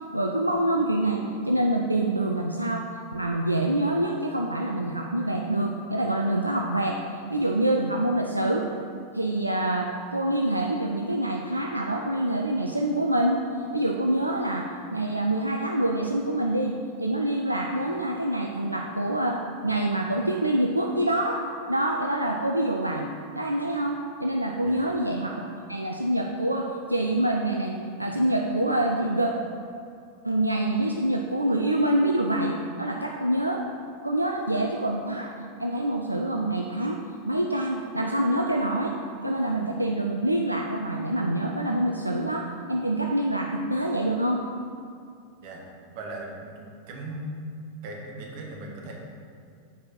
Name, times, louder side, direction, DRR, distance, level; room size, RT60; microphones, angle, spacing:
voice 1, 0.1-2.9 3.1-7.0 7.3-8.7 9.1-13.4 13.7-29.3 30.2-33.6 34.0-35.3 35.6-37.0 37.3-39.0 39.2-44.4, right 1 dB, 85° right, 1 dB, 0.4 m, -26 dB
voice 2, 24.6-25.0 45.4-45.6 45.9-46.6 46.9-47.4 47.8-49.0, right 1 dB, 50° right, 0 dB, 1.2 m, -38 dB
7.1 x 4.6 x 4.3 m, 2.4 s
figure-of-eight pair, 90°, 0 cm